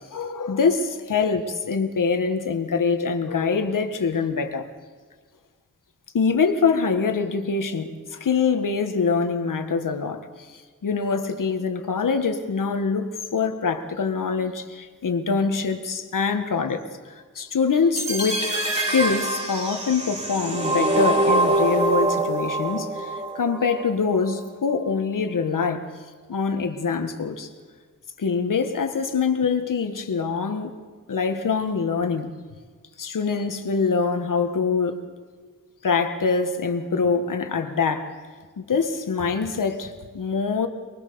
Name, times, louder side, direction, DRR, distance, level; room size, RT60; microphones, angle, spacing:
voice 1, 0.1-4.7 6.1-18.6 18.9-25.9 26.3-27.5 28.2-30.7 31.1-32.3 33.0-35.0 35.8-38.2 38.6-40.7, left 5 dB, 90° left, 7 dB, 1.8 m, -24 dB
sound 1, 18.0-24.0, right 2 dB, 20° right, 3.4 m, -24 dB
24.0 x 22.0 x 7.0 m, 1.5 s
wide cardioid pair, 110°, 31 cm